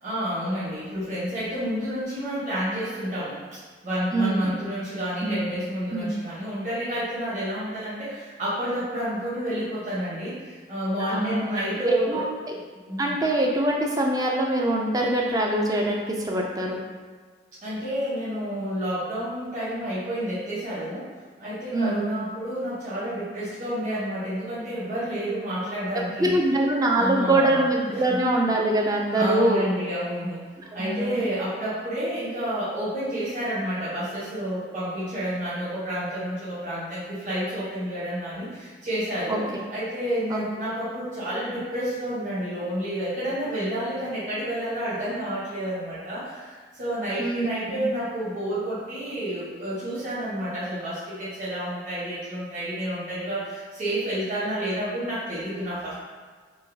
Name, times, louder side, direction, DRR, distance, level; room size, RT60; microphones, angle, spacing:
voice 1, 0.0-3.4 3.8-12.3 12.9-13.1 17.6-21.1 21.4-26.4 26.9-27.6 27.9-28.2 29.1-30.4 30.7-39.4 39.7-55.9, equal, 45° right, -11 dB, 1.1 m, -30 dB
voice 2, 4.1-4.5 5.2-5.4 5.9-6.1 11.0-11.4 11.8-12.4 13.0-16.8 21.7-22.1 26.2-29.7 30.7-31.3 39.3-39.4 40.3-40.4 47.2-47.8, right 1 dB, 20° right, -1 dB, 0.3 m, -24 dB
3.7 x 2.4 x 2.7 m, 1.5 s
head